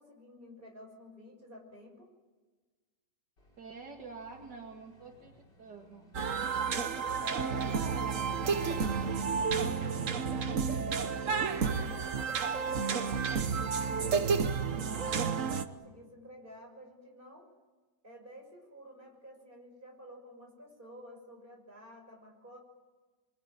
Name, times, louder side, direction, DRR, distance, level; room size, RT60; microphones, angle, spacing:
voice 1, 0.0-2.1 7.0-7.9 9.4-17.5 18.0-22.6, equal, 30° right, 1 dB, 6.6 m, -51 dB
Motorcycle / Engine, 3.4-13.1, equal, 80° left, 5.4 m, -52 dB
voice 2, 3.6-6.1 7.3-8.4, right 3 dB, 70° right, 1 dB, 2.7 m, -47 dB
sound 1, 6.1-15.6, right 5 dB, 50° right, 1.4 m, -31 dB
25.5 x 23.0 x 9.2 m, 1.3 s
omnidirectional pair, 1.9 m